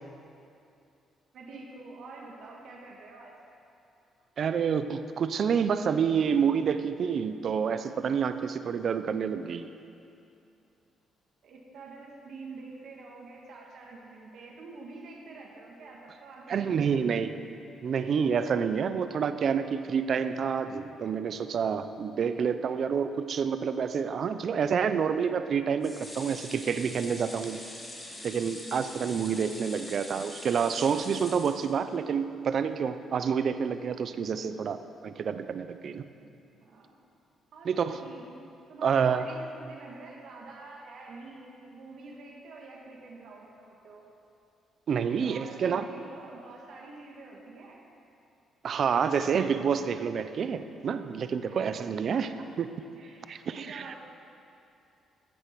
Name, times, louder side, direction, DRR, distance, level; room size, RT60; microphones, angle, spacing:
voice 1, 1.3-3.4 11.4-17.4 29.5-29.7 36.2-36.3 36.6-37.0 37.5-38.3 38.7-44.1 45.1-47.8 51.4-51.7 52.1-52.5 53.0-53.2 53.5-54.0, right 3 dB, 70° right, -1 dB, 1.9 m, -47 dB
voice 2, 4.4-9.7 16.5-17.3 17.8-27.6 28.2-36.1 37.6-38.0 38.8-39.4 44.9-45.9 48.6-52.3 52.6-52.7 53.3-53.9, right 6 dB, 55° right, 11 dB, 0.6 m, -28 dB
sound 1, 25.8-32.1 32.5-32.6 32.9-33.0, left 1 dB, 20° left, 2.9 m, -44 dB
15.0 x 8.1 x 6.1 m, 2.6 s
cardioid pair, 115°, 0 cm